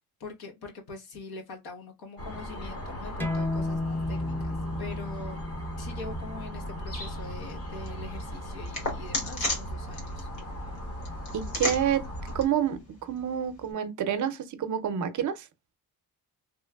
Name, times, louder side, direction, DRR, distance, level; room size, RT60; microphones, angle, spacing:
voice 1, 0.2-5.5 5.8-10.3, left 3 dB, 90° left, 1.1 m, -43 dB
sound 1, 2.2-12.5, equal, 40° left, 0.9 m, -37 dB
sound 2, 3.2-8.4, left 2 dB, 5° left, 0.4 m, -34 dB
sound 3, 6.9-13.7, left 2 dB, 55° left, 1.4 m, -37 dB
voice 2, 11.3-12.1 12.3-15.5, right 9 dB, 55° right, 0.5 m, -28 dB
3.1 x 2.9 x 2.2 m
wide cardioid pair, 155°, 36 cm